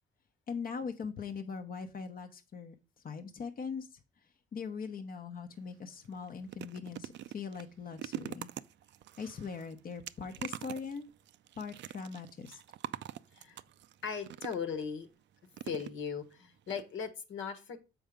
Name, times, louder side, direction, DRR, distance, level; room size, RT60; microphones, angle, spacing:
voice 1, 0.5-2.7 3.0-4.0 4.5-8.5 9.2-11.1 11.6-12.6, left 5 dB, 45° left, 5 dB, 0.9 m, -41 dB
sound 1, 5.5-5.7 6.0-14.8 15.5-16.3 16.7-16.8 17.1-17.2, right 12 dB, 65° right, 0.4 m, -45 dB
voice 2, 13.3-13.6 14.0-15.1 15.6-17.8, left 6 dB, 75° left, 7 dB, 1.3 m, -38 dB
7.1 x 4.6 x 5.1 m, 0.30 s
cardioid pair, 90°, 20 cm